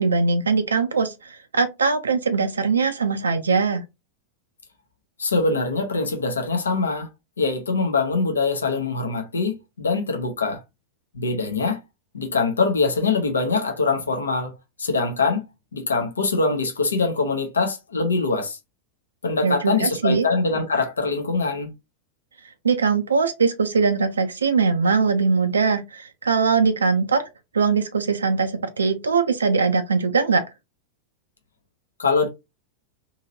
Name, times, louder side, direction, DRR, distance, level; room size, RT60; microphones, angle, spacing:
voice 1, 0.0-3.8 19.4-20.3 22.6-27.3 27.5-30.4, right 4 dB, 75° right, 0.4 m, -21 dB
voice 2, 5.2-7.1 7.4-10.6 11.1-11.8 12.1-14.5 14.8-15.4 15.7-18.6 19.2-21.7 32.0-32.3, left 4 dB, 75° left, 0.7 m, -23 dB
2.8 x 2.7 x 2.7 m
figure-of-eight pair, 90°, 0 cm